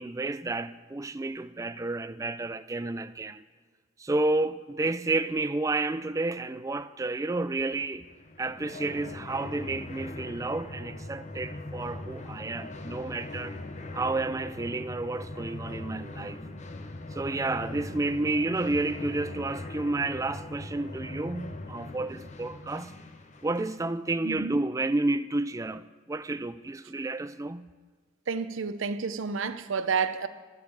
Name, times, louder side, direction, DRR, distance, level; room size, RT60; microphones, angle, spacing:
voice 1, 0.0-3.4 4.0-8.1 8.4-13.6 13.9-16.4 17.1-22.9 23.4-27.7, right 2 dB, 15° right, 0.3 m, -31 dB
sound 1, 8.1-23.8, left 2 dB, 35° left, 0.8 m, -41 dB
voice 2, 24.2-24.6 28.3-30.3, right 5 dB, 70° right, 0.7 m, -30 dB
12.5 x 8.3 x 8.4 m
head